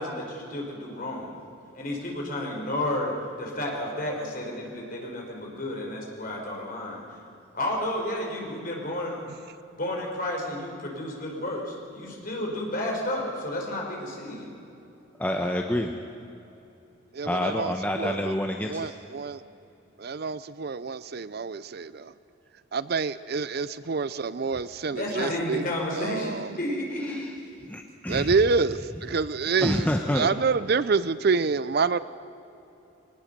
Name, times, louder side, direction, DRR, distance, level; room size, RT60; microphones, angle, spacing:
voice 1, 0.0-1.4 1.7-7.0 7.5-9.2 9.7-14.5 24.9-27.3, left 1 dB, 45° left, 0 dB, 4.4 m, -31 dB
voice 2, 15.2-15.9 17.2-18.9 27.1-27.3 27.7-28.3 29.6-30.3, left 1 dB, 10° left, 3 dB, 0.9 m, -28 dB
voice 3, 17.1-18.3 18.6-19.4 20.0-22.1 22.7-25.6 25.9-26.5 28.1-32.0, right 4 dB, 50° right, 16 dB, 0.5 m, -27 dB
21.5 x 19.0 x 6.7 m, 2.8 s
head